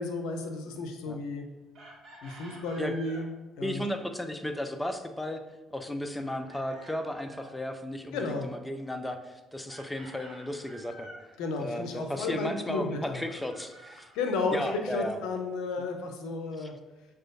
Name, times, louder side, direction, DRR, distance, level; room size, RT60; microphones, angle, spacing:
voice 1, 0.0-1.4 2.2-3.3 3.6-3.8 8.1-8.5 11.4-13.2 14.1-16.7, left 3 dB, 75° left, 4 dB, 0.5 m, -33 dB
Chicken rooster, 1.7-3.3 6.2-7.6 9.7-11.3 13.2-14.8, right 2 dB, 50° right, 1.0 m, -50 dB
voice 2, 3.6-5.4 5.7-11.1 11.6-14.1 14.5-15.1 16.6-16.7, left 1 dB, 10° left, 6 dB, 0.5 m, -34 dB
6.1 x 2.3 x 2.6 m, 1.1 s
hypercardioid pair, 55°, 0 cm